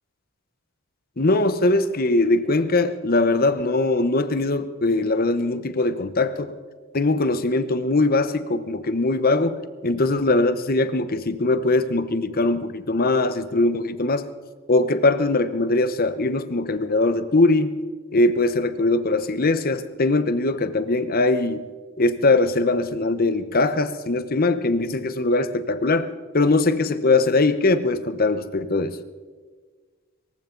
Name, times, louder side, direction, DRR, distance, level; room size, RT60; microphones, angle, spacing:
voice 1, 1.2-6.5 6.9-14.3 14.7-17.8 18.1-21.7 22.0-29.0, left 2 dB, 50° left, 1.0 m, -21 dB
24.0 x 15.0 x 3.9 m
head